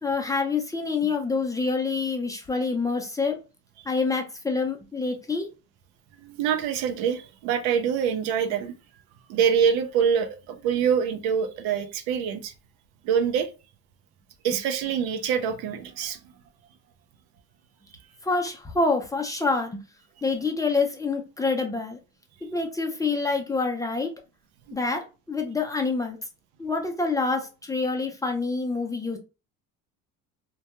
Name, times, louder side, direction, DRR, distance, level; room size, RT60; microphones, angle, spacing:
voice 1, 0.0-3.4 3.9-5.5 18.2-19.8 20.2-22.0 22.4-24.1 24.7-26.2 26.6-29.2, left 4 dB, 10° left, 0.4 m, -27 dB
voice 2, 6.2-8.7 9.3-12.5 13.0-13.5 14.4-16.2 24.7-24.8, right 7 dB, 85° right, 0.6 m, -25 dB
2.2 x 2.2 x 2.9 m
supercardioid pair, 100°, 36 cm